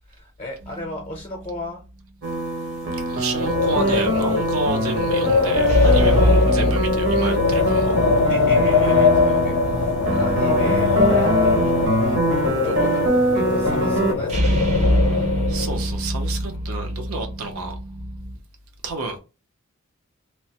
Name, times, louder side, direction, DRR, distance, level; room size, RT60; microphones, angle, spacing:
voice 1, 0.1-1.8 8.3-12.2 12.5-14.6, left 1 dB, 25° left, 0.6 m, -36 dB
sound 1, 0.6-1.5 5.7-9.3 14.3-18.3, equal, 35° right, 0.6 m, -24 dB
sound 2, 2.2-14.1, right 2 dB, 60° right, 0.8 m, -23 dB
voice 2, 3.1-7.9 10.1-10.2 15.1-17.8 18.8-19.2, right 3 dB, 85° right, 0.7 m, -30 dB
Wind, 3.2-15.9, left 5 dB, 85° left, 0.4 m, -21 dB
3.1 x 2.0 x 2.8 m
head